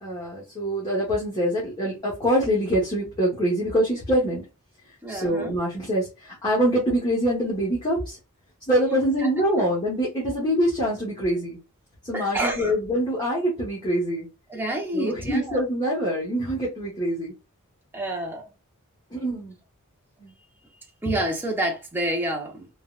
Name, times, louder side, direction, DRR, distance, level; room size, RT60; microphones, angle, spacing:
voice 1, 0.0-4.4 5.1-8.2 8.7-11.6 12.0-14.3 14.9-17.3 19.1-19.5 20.2-20.3, equal, 20° left, 1.1 m, -24 dB
voice 2, 5.0-5.5 12.1-12.7 14.5-15.6 17.9-18.4 21.0-22.7, right 1 dB, 10° right, 0.6 m, -28 dB
3.7 x 2.2 x 2.3 m
head